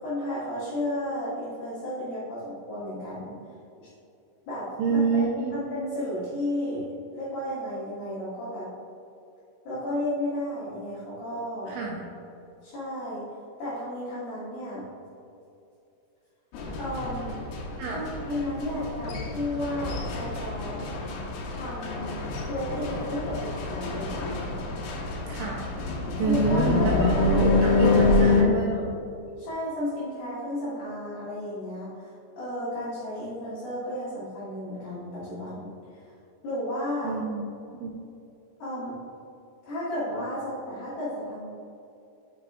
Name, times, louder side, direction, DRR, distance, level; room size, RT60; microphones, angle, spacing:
voice 1, 0.0-3.4 4.5-5.2 5.5-6.9 7.1-8.7 9.7-11.8 12.6-13.2 13.6-14.8 16.8-17.4 17.9-20.8 21.5-22.2 22.5-24.2 26.2-28.2 29.4-36.0 36.4-37.1 38.6-39.0 39.7-41.5, left 1 dB, 65° left, -10 dB, 2.6 m, -33 dB
voice 2, 4.8-5.6 11.7-12.1 17.8-18.0 25.3-25.7 26.2-28.9 37.0-37.5 37.7-38.0, right 4 dB, 85° right, -3 dB, 2.6 m, -27 dB
sound 1, 16.5-28.4, left 3 dB, 85° left, 3.4 m, -27 dB
6.8 x 6.5 x 2.3 m, 2.7 s
omnidirectional pair, 5.9 m